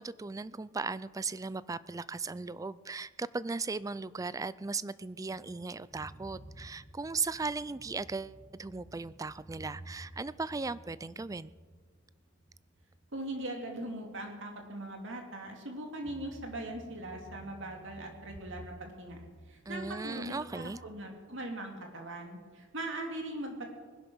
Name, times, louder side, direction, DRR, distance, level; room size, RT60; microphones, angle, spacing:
voice 1, 0.0-11.5 19.7-20.8, right 4 dB, 15° right, 18 dB, 0.4 m, -37 dB
sound 1, 5.3-13.8 14.2-14.3 16.0-20.7, right 1 dB, 10° left, 1.9 m, -53 dB
voice 2, 13.1-23.6, right 1 dB, 65° right, 2 dB, 2.6 m, -40 dB
21.0 x 10.5 x 6.3 m, 1.5 s
head